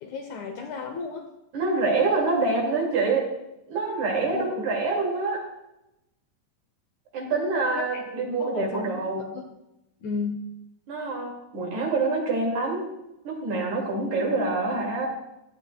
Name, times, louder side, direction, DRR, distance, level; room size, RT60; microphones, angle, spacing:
voice 1, 0.0-1.3 4.3-4.7 7.7-9.5 10.0-10.4, left 4 dB, 70° left, 5 dB, 1.9 m, -34 dB
voice 2, 1.5-3.3 3.7-5.4 7.1-9.2 10.9-12.9 13.2-15.1, right 3 dB, 55° right, 0 dB, 3.3 m, -26 dB
16.0 x 11.5 x 2.2 m, 0.89 s
omnidirectional pair, 4.1 m